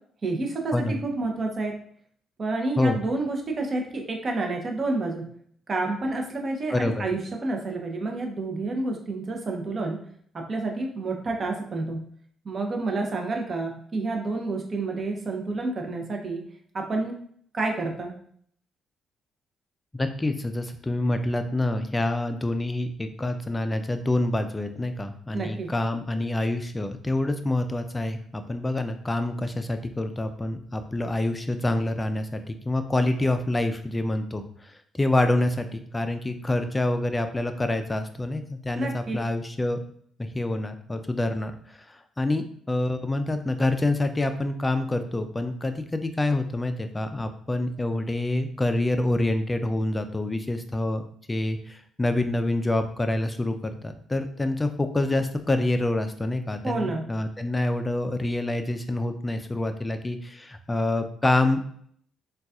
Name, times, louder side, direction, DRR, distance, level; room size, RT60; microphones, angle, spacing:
voice 1, 0.2-1.7 2.4-5.2 5.7-10.0 10.3-12.0 12.4-16.4 16.7-17.2 17.5-18.1 25.3-25.7 38.7-39.2 56.6-57.1, right 2 dB, 40° right, 2 dB, 0.7 m, -29 dB
voice 2, 6.7-7.1 19.9-34.4 34.9-39.8 40.2-41.5 41.9-51.0 51.3-53.6 53.8-61.7, left 2 dB, 15° left, 8 dB, 0.4 m, -27 dB
3.9 x 2.3 x 2.4 m, 0.62 s
cardioid pair, 90°, 0 cm